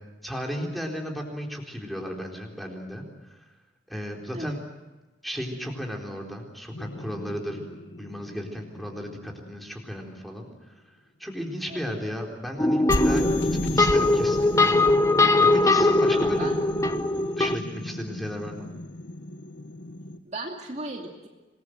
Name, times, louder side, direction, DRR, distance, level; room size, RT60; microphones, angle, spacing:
voice 1, 0.2-3.4 3.9-4.6 5.2-7.7 8.0-10.5 11.2-14.8 15.4-16.5 17.4-18.7, equal, ahead, 1 dB, 4.0 m, -34 dB
sound 1, 6.7-9.8 12.9-20.2, left 1 dB, 85° left, 1.5 m, -34 dB
sound 2, 12.6-17.6, left 2 dB, 15° left, 0.9 m, -21 dB
voice 2, 16.1-16.6 20.2-21.3, right 2 dB, 40° right, 1 dB, 2.6 m, -36 dB
27.0 x 21.0 x 7.8 m, 1.1 s
head